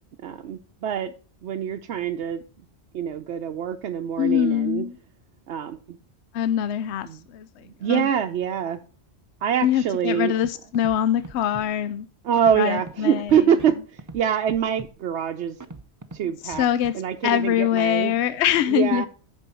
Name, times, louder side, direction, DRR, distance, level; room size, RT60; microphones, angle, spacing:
voice 1, 0.2-1.1 1.4-2.4 2.9-4.8 5.5-6.0 7.1-7.2 7.6-8.8 9.4-10.4 12.2-15.6 16.1-16.6 16.9-18.1 18.7-19.1, right 8 dB, 80° right, 0.9 m, -25 dB
voice 2, 4.2-5.0 6.3-7.5 7.9-8.1 9.6-12.1 12.6-13.4 16.4-16.9 17.2-19.1, left 10 dB, 80° left, 0.9 m, -23 dB
Scratching (performance technique), 10.4-10.5 10.7-11.0 11.2-11.7 12.3-12.9 13.3-13.7 14.0-14.2 14.5-14.9 15.6-16.2 16.5-16.9, right 2 dB, 20° right, 0.6 m, -40 dB
9.1 x 5.6 x 4.2 m
omnidirectional pair, 1.1 m